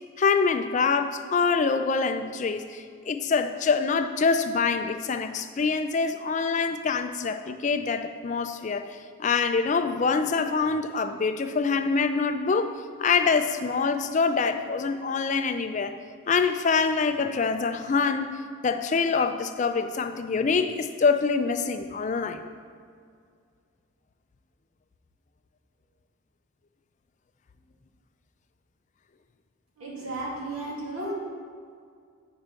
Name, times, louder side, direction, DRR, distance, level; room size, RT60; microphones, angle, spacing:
voice 1, 0.2-8.9 9.2-12.7 13.0-16.0 16.3-18.3 18.6-22.4, left 5 dB, 35° left, 9 dB, 0.3 m, -25 dB
voice 2, 29.8-31.1, right 2 dB, 90° right, -4 dB, 2.1 m, -34 dB
8.7 x 4.5 x 5.2 m, 2.2 s
head